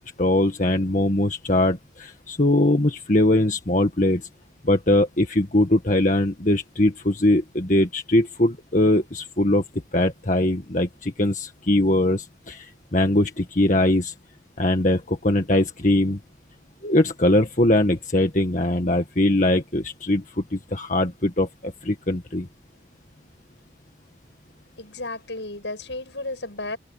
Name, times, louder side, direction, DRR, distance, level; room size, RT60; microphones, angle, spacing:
voice 1, 0.2-4.3 4.6-9.6 9.9-14.1 14.6-16.2 16.8-22.5, left 1 dB, 45° left, 1.9 m, -21 dB
voice 2, 24.8-26.8, left 2 dB, 75° left, 7.7 m, -33 dB
head